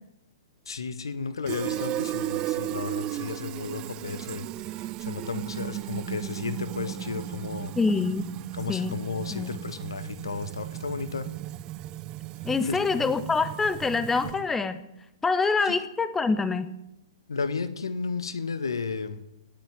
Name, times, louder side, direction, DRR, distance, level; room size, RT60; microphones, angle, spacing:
voice 1, 0.7-7.7 8.5-11.3 12.6-13.1 15.6-15.8 17.3-19.2, left 5 dB, 70° left, 14 dB, 1.4 m, -33 dB
Fill (with liquid), 1.5-14.6, right 15 dB, 30° right, 0.5 m, -35 dB
voice 2, 7.8-8.3 8.7-9.0 9.3-9.5 12.4-14.8 15.2-16.7, left 4 dB, 10° left, 14 dB, 0.9 m, -25 dB
18.5 x 7.5 x 9.1 m, 0.87 s
figure-of-eight pair, 115°, 3 cm